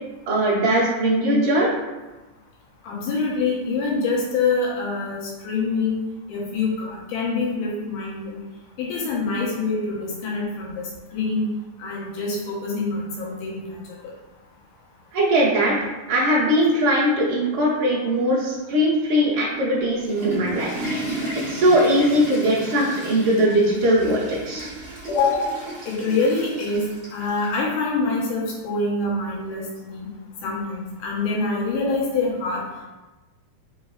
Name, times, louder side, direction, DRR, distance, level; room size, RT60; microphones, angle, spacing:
voice 1, 0.3-1.7 15.1-15.7 16.1-20.7 21.1-24.7, equal, 80° right, -8 dB, 1.2 m, -20 dB
voice 2, 2.8-6.0 6.3-8.4 8.8-11.5 11.8-14.1 25.1-25.6 25.9-30.1 30.4-32.6, left 3 dB, 85° left, -4 dB, 2.5 m, -25 dB
Water / Toilet flush, 19.8-27.6, right 1 dB, 45° right, 0.7 m, -34 dB
5.2 x 3.1 x 2.3 m, 1.1 s
omnidirectional pair, 3.7 m